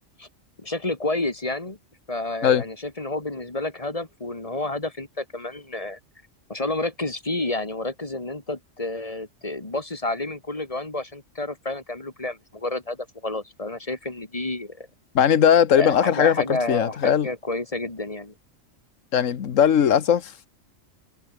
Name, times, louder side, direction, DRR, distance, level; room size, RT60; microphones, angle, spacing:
voice 1, 0.6-1.8 2.1-6.0 6.5-14.9 15.8-18.3, left 2 dB, 25° left, 2.5 m, -30 dB
voice 2, 15.1-17.3 19.1-20.5, left 8 dB, 80° left, 1.5 m, -19 dB
omnidirectional pair, 1.3 m